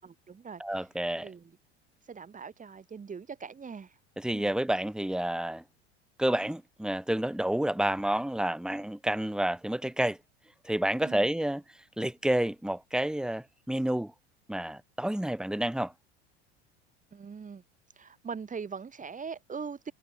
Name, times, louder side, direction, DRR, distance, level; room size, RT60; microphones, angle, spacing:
voice 1, 0.0-1.5 2.0-4.0 4.3-4.5 11.0-11.3 17.1-17.6 17.9-19.9, right 6 dB, 25° right, 4.0 m, -42 dB
voice 2, 0.6-1.3 4.2-5.6 6.2-10.2 10.6-11.6 12.0-14.1 14.5-15.9, right 1 dB, ahead, 3.6 m, -29 dB
hypercardioid pair, 80°, 33 cm